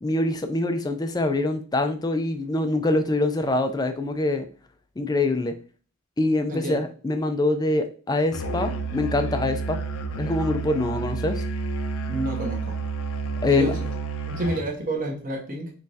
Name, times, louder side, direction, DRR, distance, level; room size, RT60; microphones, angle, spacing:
voice 1, 0.0-4.5 5.0-5.5 6.2-9.8 10.2-11.4 13.4-13.7, left 2 dB, 15° left, 7 dB, 0.4 m, -24 dB
voice 2, 6.5-6.8 12.1-12.8 13.4-13.9 14.3-15.7, right 2 dB, 35° right, -1 dB, 1.2 m, -29 dB
Musical instrument, 8.3-14.7, right 4 dB, 75° left, 0.5 m, -30 dB
5.5 x 3.1 x 2.7 m, 0.41 s
head